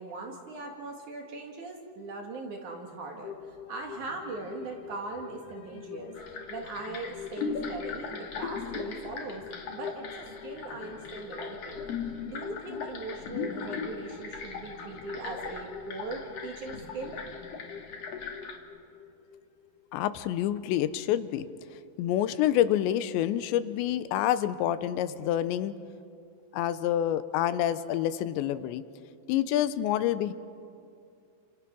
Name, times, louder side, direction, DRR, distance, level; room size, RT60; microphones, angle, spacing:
voice 1, 0.0-6.1 6.5-9.4 9.7-11.9 12.3-17.2, right 3 dB, 55° right, 2 dB, 2.5 m, -40 dB
sound 1, 3.2-20.0 20.4-20.5, left 7 dB, 65° left, 2.2 m, -45 dB
sound 2, 6.1-18.6, left 5 dB, 45° left, 2.3 m, -39 dB
voice 2, 19.9-21.5 22.0-25.7 26.5-28.8 29.3-30.3, left 11 dB, 80° left, 13 dB, 3.0 m, -27 dB
29.0 x 27.0 x 6.2 m, 2.4 s
omnidirectional pair, 5.3 m